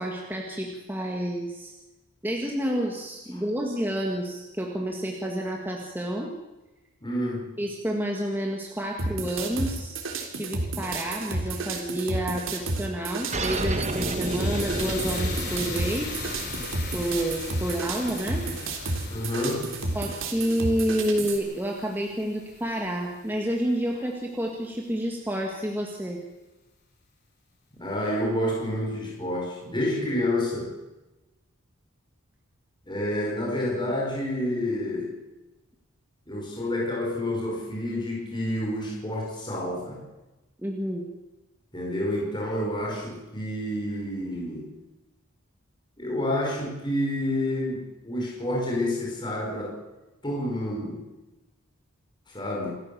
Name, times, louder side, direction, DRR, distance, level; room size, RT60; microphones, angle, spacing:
voice 1, 0.0-1.7 2.2-6.3 7.6-10.0 10.3-16.2 16.9-18.5 19.9-26.2 40.6-41.0, right 1 dB, 10° right, 0 dB, 2.0 m, -29 dB
voice 2, 7.0-7.5 19.1-19.8 27.8-30.7 32.9-35.1 36.3-40.0 41.7-44.7 46.0-49.7 50.2-51.0 52.3-52.7, left 1 dB, 20° left, -2 dB, 5.2 m, -29 dB
sound 1, 9.0-21.4, right 2 dB, 65° right, 3.7 m, -31 dB
sound 2, 13.1-23.2, left 3 dB, 50° left, 5.3 m, -39 dB
sound 3, 13.3-18.4, right 2 dB, 30° right, 1.5 m, -33 dB
27.5 x 14.0 x 7.0 m, 1.1 s
head